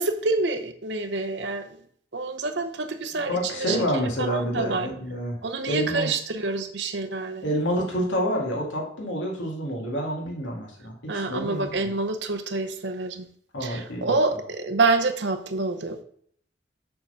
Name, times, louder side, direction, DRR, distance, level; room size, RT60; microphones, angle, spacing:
voice 1, 0.0-1.7 2.1-3.8 4.2-4.9 5.4-7.4 11.1-13.3 13.6-16.0, right 3 dB, 65° right, 7 dB, 0.8 m, -27 dB
voice 2, 3.1-5.4 5.7-6.1 7.4-11.9 13.5-14.2, equal, 85° left, -1 dB, 2.0 m, -28 dB
6.9 x 3.7 x 5.6 m, 0.62 s
head